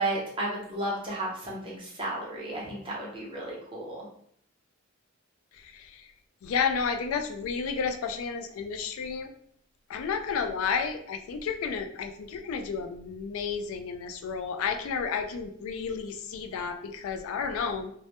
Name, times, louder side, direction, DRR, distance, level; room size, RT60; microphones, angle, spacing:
voice 1, 0.0-4.1, right 2 dB, 25° right, -4 dB, 0.6 m, -33 dB
voice 2, 5.5-6.1 6.4-9.3 9.9-17.9, left 6 dB, 85° left, 7 dB, 0.3 m, -31 dB
2.1 x 2.1 x 2.8 m, 0.64 s
head